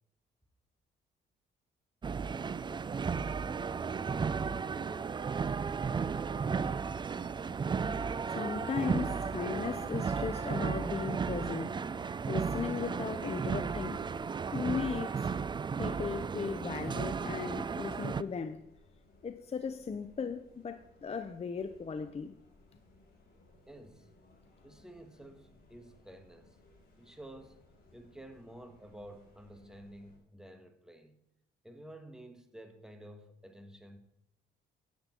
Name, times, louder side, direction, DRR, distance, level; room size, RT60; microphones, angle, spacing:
sound 1, 2.0-18.2, right 5 dB, 25° right, 0.4 m, -34 dB
voice 1, 8.3-14.0 14.5-15.3 15.8-18.6 19.2-22.3, left 6 dB, 30° left, 0.6 m, -37 dB
sound 2, 15.8-30.2, left 2 dB, 50° left, 4.2 m, -63 dB
voice 2, 23.7-24.1 24.6-26.6 27.0-27.6 27.9-31.2 31.6-34.0, right 1 dB, 5° right, 1.5 m, -51 dB
10.5 x 8.8 x 4.4 m
cardioid pair, 90°, 20 cm